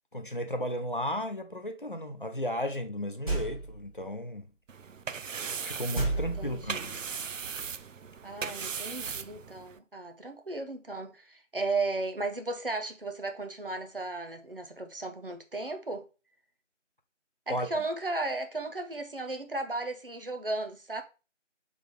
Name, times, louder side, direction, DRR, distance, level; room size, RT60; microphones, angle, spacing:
voice 1, 0.1-4.5 5.6-7.0 17.5-17.7, equal, 45° left, 0.5 m, -34 dB
sound 1, 3.3-3.9 5.9-7.0, right 2 dB, 30° right, 1.4 m, -32 dB
sound 2, 4.7-9.8, right 6 dB, 85° right, 0.5 m, -38 dB
voice 2, 6.1-6.8 8.2-16.1 17.5-21.0, right 2 dB, 45° right, 0.7 m, -35 dB
3.7 x 3.5 x 3.6 m
figure-of-eight pair, 170°, 37 cm